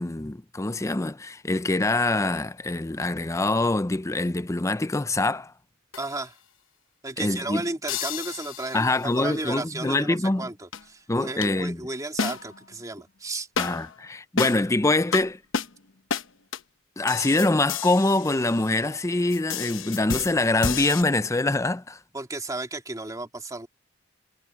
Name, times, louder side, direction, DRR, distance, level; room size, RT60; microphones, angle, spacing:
voice 1, 0.0-5.5 7.2-7.6 8.7-10.5 11.1-11.8 13.6-15.4 17.0-22.0, left 2 dB, 15° left, 0.5 m, -24 dB
sound 1, 5.9-6.2 7.9-9.1 10.7-10.8 11.4-11.5 12.2-12.7 13.6-14.0 14.4-14.7 15.1-15.2 15.5-15.7 16.1-16.3 16.5-16.6 17.1-19.0 19.3-21.0, left 6 dB, 65° left, 1.0 m, -31 dB
voice 2, 6.0-6.4 7.0-8.8 9.2-13.5 22.1-23.7, right 2 dB, 15° right, 2.8 m, -33 dB
head